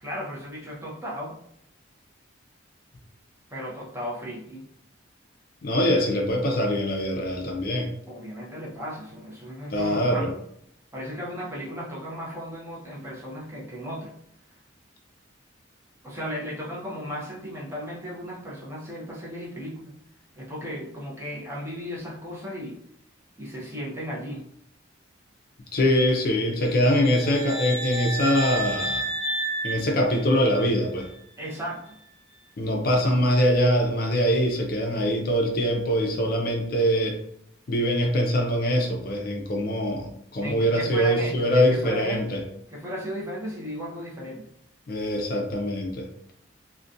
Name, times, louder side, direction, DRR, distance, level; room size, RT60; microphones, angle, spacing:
voice 1, 0.0-1.4 3.5-4.6 8.1-10.3 10.9-14.2 16.0-19.9 20.4-22.8 23.4-24.4 31.4-32.0 40.4-42.2 42.7-44.4, equal, 15° right, -5 dB, 0.6 m, -35 dB
voice 2, 5.6-7.9 9.7-10.3 25.7-29.1 29.6-31.1 32.6-37.2 37.7-42.4 44.9-46.1, equal, 50° left, 1 dB, 0.4 m, -23 dB
sound 1, 26.7-30.7, right 2 dB, 55° right, 1.0 m, -31 dB
2.4 x 2.1 x 2.5 m, 0.71 s
head